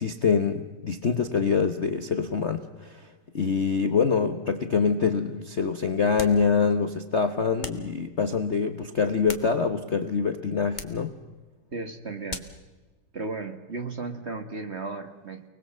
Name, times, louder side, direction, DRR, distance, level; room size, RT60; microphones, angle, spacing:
voice 1, 0.0-3.1 3.3-11.1, left 5 dB, 40° left, 7 dB, 1.0 m, -25 dB
sound 1, 6.1-6.5 7.6-7.9 9.0-9.9 10.7-11.1 12.3-12.6, left 3 dB, 25° left, 1.5 m, -39 dB
voice 2, 11.7-12.4 13.1-15.5, right 3 dB, 30° right, 7 dB, 1.7 m, -35 dB
30.0 x 20.0 x 7.6 m, 1.2 s
omnidirectional pair, 2.4 m